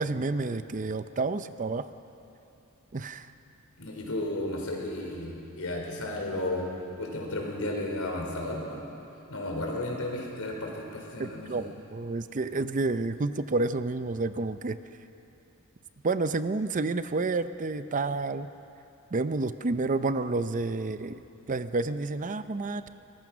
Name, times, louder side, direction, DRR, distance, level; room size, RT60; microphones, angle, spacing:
voice 1, 0.0-1.9 2.9-3.3 11.2-14.8 16.0-18.5 19.1-21.2 21.5-22.9, right 3 dB, 35° right, 12 dB, 0.6 m, -29 dB
voice 2, 3.8-6.7 7.0-8.9 9.3-11.5, left 1 dB, 80° left, 0 dB, 4.3 m, -33 dB
23.5 x 19.5 x 6.2 m, 2.8 s
head